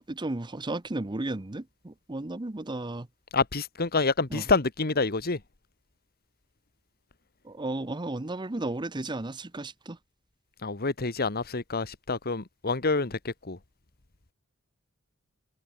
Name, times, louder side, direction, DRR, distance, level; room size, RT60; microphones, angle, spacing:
voice 1, 0.0-3.1 4.3-4.4 7.4-10.0, right 2 dB, 20° right, 0.8 m, -34 dB
voice 2, 3.3-5.4 10.6-13.6, left 3 dB, 45° left, 1.5 m, -27 dB
head